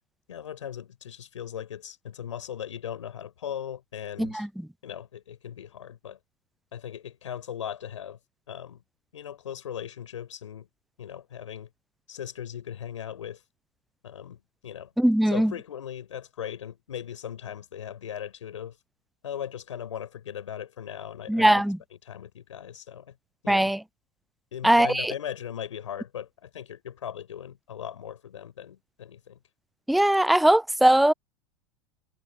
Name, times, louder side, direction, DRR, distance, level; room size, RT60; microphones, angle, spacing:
voice 1, 0.3-4.5 4.8-6.2 6.7-8.2 8.5-8.8 9.1-10.7 11.0-11.7 12.1-13.4 14.0-14.9 15.3-18.8 19.2-21.5 22.1-23.1 23.4-23.7 24.5-29.4, left 9 dB, 80° left, 5.6 m, -38 dB
voice 2, 4.2-4.5 15.0-15.5 21.3-21.8 23.5-23.8 24.6-25.1 29.9-31.1, right 1 dB, ahead, 0.4 m, -20 dB
hypercardioid pair, 85°, 16 cm